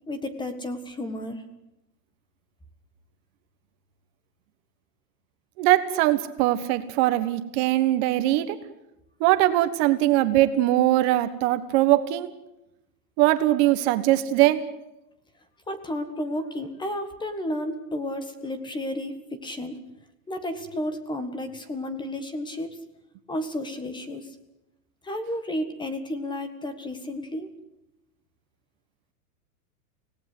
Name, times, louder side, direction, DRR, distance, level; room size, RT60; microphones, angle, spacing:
voice 1, 0.1-1.4 15.7-19.8 20.3-22.7 23.3-24.3 25.0-27.5, left 1 dB, 10° left, 10 dB, 1.6 m, -32 dB
voice 2, 5.6-8.6 9.2-12.3 13.2-14.6, right 15 dB, 40° right, 11 dB, 1.4 m, -21 dB
25.0 x 18.0 x 7.9 m, 0.91 s
supercardioid pair, 150°, 48 cm